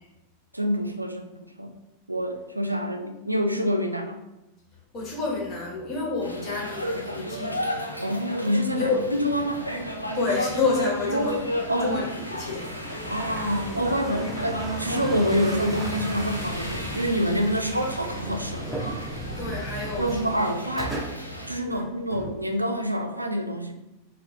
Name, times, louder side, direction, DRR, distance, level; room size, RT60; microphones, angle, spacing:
voice 1, 0.5-1.3 1.6-1.7 2.1-4.2 8.0-8.9 9.2-9.6 11.1-11.4 11.7-12.0 13.1-18.7 20.0-20.9 21.5-23.7, equal, 85° right, 5 dB, 0.4 m, -27 dB
voice 2, 4.9-7.6 8.8-9.0 10.1-11.4 11.8-12.8 19.4-20.3 21.7-21.8, left 3 dB, 30° left, -3 dB, 1.2 m, -29 dB
sound 1, 6.2-21.5, equal, 90° left, 0.4 m, -34 dB
sound 2, 8.7-22.8, right 1 dB, 5° left, 1.4 m, -37 dB
4.5 x 2.1 x 3.2 m, 0.95 s
figure-of-eight pair, 90°, 0 cm